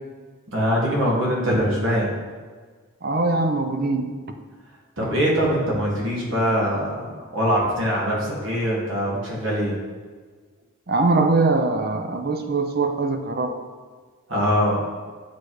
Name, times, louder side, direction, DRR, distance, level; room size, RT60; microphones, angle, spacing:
voice 1, 0.5-2.1 5.0-6.9 7.3-9.7 14.3-14.8, equal, 65° right, -4 dB, 1.8 m, -22 dB
voice 2, 3.0-4.1 10.9-13.6, right 3 dB, 45° right, 6 dB, 0.5 m, -22 dB
8.4 x 3.3 x 4.6 m, 1.5 s
head